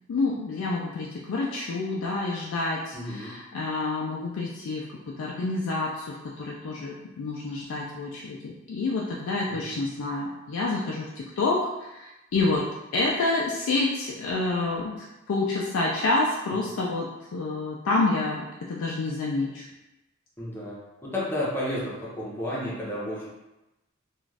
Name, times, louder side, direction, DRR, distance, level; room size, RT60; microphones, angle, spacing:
voice 1, 0.1-12.6 12.9-19.7, left 3 dB, 70° left, -4 dB, 0.4 m, -28 dB
voice 2, 2.9-3.3 9.5-9.8 16.6-16.7 20.4-23.3, left 1 dB, 10° left, -7 dB, 0.7 m, -32 dB
2.5 x 2.3 x 3.2 m, 0.98 s
head